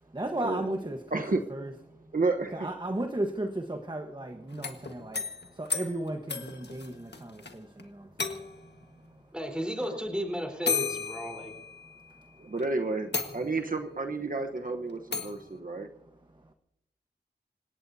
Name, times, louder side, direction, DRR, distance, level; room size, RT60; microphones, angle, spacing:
voice 1, 0.0-1.2 1.5-2.1 2.5-9.3 11.4-12.5 15.3-16.5, right 1 dB, 25° right, 5 dB, 1.3 m, -37 dB
voice 2, 2.1-2.7 9.8-10.0 12.4-15.9, right 3 dB, 50° right, 4 dB, 1.1 m, -31 dB
sound 1, 4.5-7.5 7.8-7.9 8.2-8.8 9.8-9.9 10.7-12.1 12.6-12.7 13.1-13.8 15.1-15.4, left 4 dB, 65° left, 1.6 m, -34 dB
voice 3, 9.3-11.5, equal, 5° right, 3 dB, 4.2 m, -34 dB
27.0 x 17.5 x 2.8 m, 0.79 s
cardioid pair, 45°, 19 cm